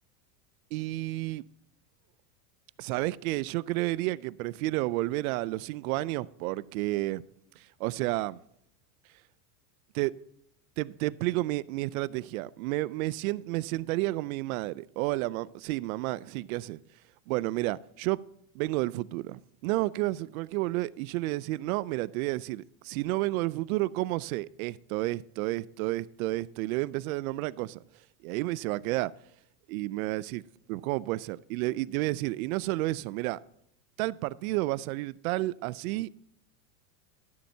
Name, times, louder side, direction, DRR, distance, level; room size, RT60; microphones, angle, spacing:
voice 1, 0.7-1.4 2.8-7.2 7.6-8.4 9.9-10.1 10.8-16.8 17.3-18.2 18.5-27.8 28.2-29.1 29.7-30.4 30.7-33.4 34.0-36.1, right 19 dB, 70° right, 0.5 m, -31 dB
12.5 x 11.5 x 2.8 m
supercardioid pair, 150°, 45 cm